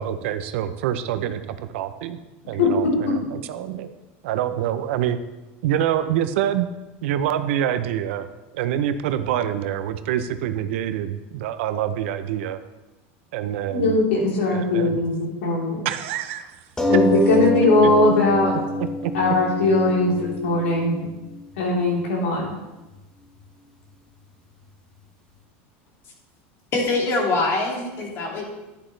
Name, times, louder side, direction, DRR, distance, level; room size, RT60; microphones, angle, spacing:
voice 1, 0.0-2.2 2.5-3.9 4.2-5.2 5.6-6.7 7.0-8.3 8.5-12.6 13.3-14.0 14.5-15.0 15.8-16.5 17.8-17.9 18.8-18.9 19.3-19.4, right 10 dB, 75° right, 10 dB, 0.7 m, -26 dB
voice 2, 2.4-2.9 13.7-15.8 16.9-18.6 19.1-21.0 21.6-22.5, left 2 dB, 90° left, -4 dB, 3.7 m, -20 dB
sound 1, 16.8-21.8 22.5-22.6 22.9-23.0, left 1 dB, 10° left, 1.1 m, -25 dB
voice 3, 26.7-28.4, left 3 dB, 40° left, 0 dB, 2.4 m, -23 dB
10.5 x 9.8 x 3.3 m, 1.1 s
supercardioid pair, 135°, 7 cm